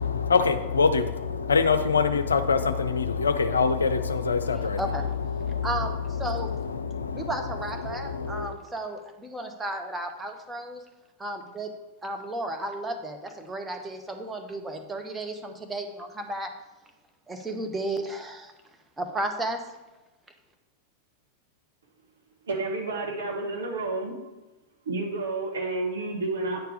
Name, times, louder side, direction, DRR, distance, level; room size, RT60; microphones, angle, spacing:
voice 1, 0.0-4.9 5.2-7.4 7.8-8.6, left 5 dB, 70° left, 10 dB, 0.5 m, -25 dB
voice 2, 4.5-5.1 5.6-5.9 6.2-6.5 7.1-10.8 11.2-11.7 12.0-16.5 17.3-18.5 19.0-19.6, right 2 dB, 10° right, 4 dB, 1.0 m, -33 dB
voice 3, 22.5-24.1 24.8-26.6, right 3 dB, 65° right, 0 dB, 1.5 m, -30 dB
9.3 x 4.6 x 4.9 m, 1.1 s
figure-of-eight pair, 90°, 0 cm